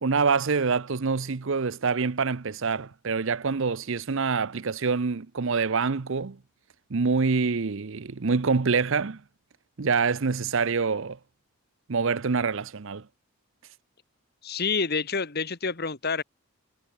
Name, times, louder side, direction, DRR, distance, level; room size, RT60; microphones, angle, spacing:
voice 1, 0.0-6.4 6.9-9.2 9.8-11.2 11.9-13.0, right 4 dB, 55° right, 0.6 m, -26 dB
voice 2, 14.4-16.2, left 5 dB, 45° left, 1.5 m, -28 dB
head